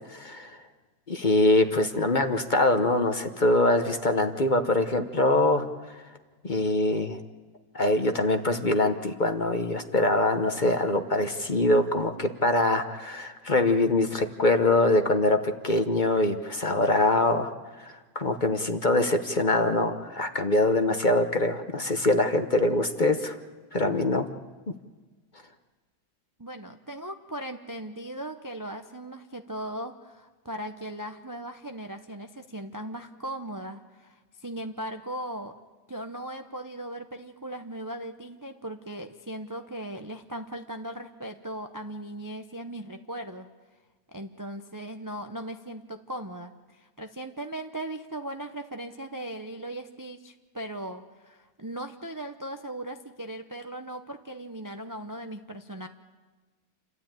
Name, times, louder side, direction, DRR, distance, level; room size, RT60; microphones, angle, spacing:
voice 1, 0.1-0.5 1.1-5.6 6.4-7.2 7.7-17.5 17.8-23.3 23.7-24.3, left 2 dB, 35° left, 7 dB, 0.9 m, -24 dB
voice 2, 26.4-35.6 35.9-43.5 44.1-55.9, right 1 dB, 25° right, 6 dB, 0.4 m, -38 dB
29.0 x 13.0 x 9.0 m, 1.3 s
omnidirectional pair, 1.7 m